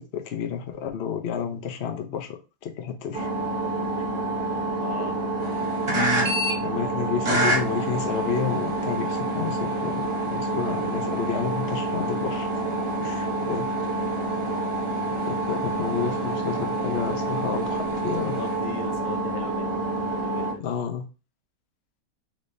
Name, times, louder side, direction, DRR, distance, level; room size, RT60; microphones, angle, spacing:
voice 1, 0.0-3.3 4.0-4.1 6.6-12.5 13.0-13.7 15.3-18.4 20.6-21.0, left 7 dB, 55° left, 0.7 m, -31 dB
sound 1, 3.1-20.5, right 2 dB, 35° right, 0.5 m, -27 dB
voice 2, 4.8-5.3 6.8-7.1 13.0-13.1 13.4-13.5 13.8-13.9 14.3-14.6 15.1-15.4 17.1-17.4 17.8-20.7, left 6 dB, 90° left, 1.3 m, -40 dB
4.2 x 3.3 x 2.6 m
omnidirectional pair, 1.6 m